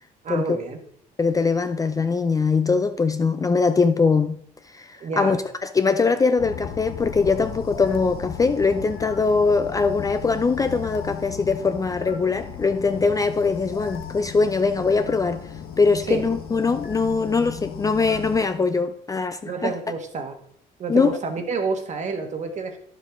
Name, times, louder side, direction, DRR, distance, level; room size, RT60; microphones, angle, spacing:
voice 1, 0.2-0.8 5.0-5.4 16.0-16.2 19.4-20.4 20.8-22.8, right 4 dB, 45° right, 1.5 m, -29 dB
voice 2, 1.2-4.4 4.7-5.4 5.7-15.4 15.8-19.7 20.9-21.1, left 4 dB, 20° left, 0.5 m, -22 dB
sound 1, 6.4-18.5, left 8 dB, 60° left, 1.1 m, -36 dB
10.5 x 7.4 x 3.6 m
cardioid pair, 110°, 17 cm